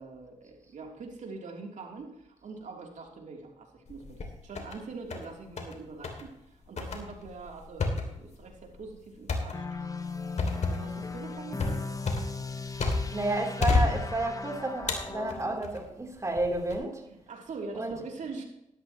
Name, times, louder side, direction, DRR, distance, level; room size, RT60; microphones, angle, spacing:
voice 1, 0.0-9.7 10.5-12.0 17.1-18.4, right 3 dB, 60° right, 0 dB, 3.2 m, -43 dB
sound 1, 3.9-4.8 5.1-5.8 6.0-6.3 6.8-13.3 13.6-14.4 14.9-15.8 16.4-16.8, left 3 dB, 55° left, 2.6 m, -31 dB
sound 2, 9.5-15.7, left 4 dB, 25° left, 1.1 m, -38 dB
voice 2, 13.1-17.1 17.7-17.9, right 2 dB, 20° right, 1 dB, 3.5 m, -31 dB
12.5 x 12.5 x 3.1 m, 0.86 s
cardioid pair, 65°, 14 cm